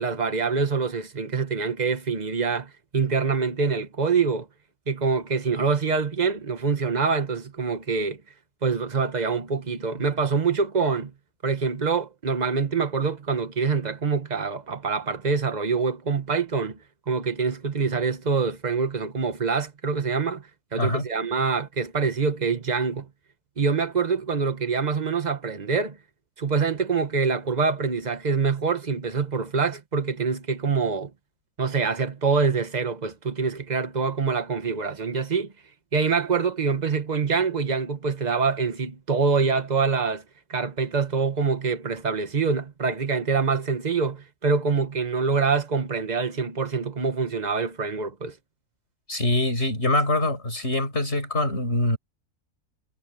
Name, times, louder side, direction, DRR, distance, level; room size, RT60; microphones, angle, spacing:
voice 1, 0.0-4.5 4.9-8.2 8.6-11.1 11.4-16.8 17.1-20.4 20.7-23.1 23.6-26.0 26.4-31.1 31.6-35.5 35.9-40.2 40.5-48.3, right 5 dB, 30° right, 1.4 m, -25 dB
voice 2, 20.8-21.1 49.1-52.0, left 1 dB, 45° left, 6.9 m, -24 dB
omnidirectional pair, 1.6 m